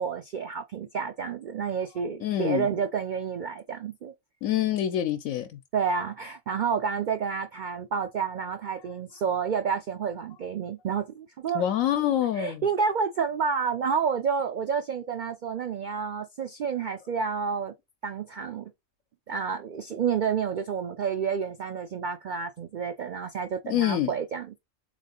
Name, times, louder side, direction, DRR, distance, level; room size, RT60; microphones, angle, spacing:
voice 1, 0.0-4.1 5.7-11.6 12.4-17.7 18.0-18.7 19.3-24.6, right 6 dB, 85° right, 0.4 m, -29 dB
voice 2, 2.2-2.7 4.4-5.6 11.5-12.6 23.6-24.1, left 11 dB, 85° left, 1.0 m, -26 dB
3.6 x 3.4 x 3.9 m
omnidirectional pair, 1.4 m